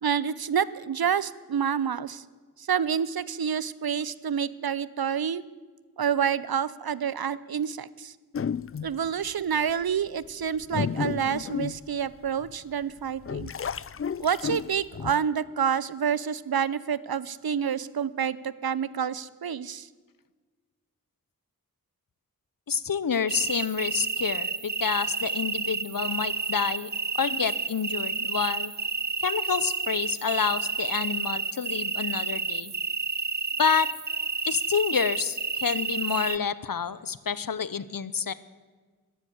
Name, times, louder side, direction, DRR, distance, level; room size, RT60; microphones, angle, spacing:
voice 1, 0.0-2.2 2.6-5.4 6.0-8.1 8.8-13.5 14.2-19.9, right 7 dB, 80° right, 19 dB, 0.7 m, -28 dB
sound 1, 8.3-9.1 9.7-9.8 10.4-12.5 13.0-15.1, left 7 dB, 40° left, 0.4 m, -32 dB
voice 2, 22.7-26.9 27.2-28.7 29.2-32.7 33.6-33.9 34.5-38.3, left 6 dB, 65° left, 17 dB, 0.8 m, -28 dB
sound 2, 23.3-36.4, right 5 dB, 30° right, 0.5 m, -30 dB
13.5 x 12.5 x 8.0 m, 1.4 s
wide cardioid pair, 45°, 36 cm